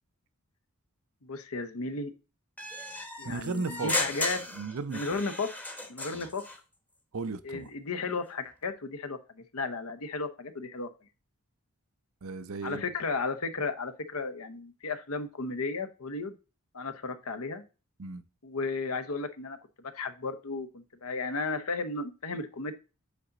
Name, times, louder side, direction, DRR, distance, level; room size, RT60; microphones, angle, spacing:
voice 1, 1.2-2.1 3.2-4.4 4.9-5.5 5.9-6.4 7.4-10.9 12.6-16.3 16.7-17.6 18.4-19.6 19.8-22.7, left 3 dB, 75° left, 0.9 m, -34 dB
sound 1, 2.6-6.6, left 1 dB, 5° left, 0.9 m, -36 dB
voice 2, 3.2-4.0 4.5-5.2 6.1-6.3 7.1-7.7 12.2-12.9 18.0-18.2, right 4 dB, 70° right, 0.6 m, -35 dB
8.4 x 4.0 x 3.8 m
head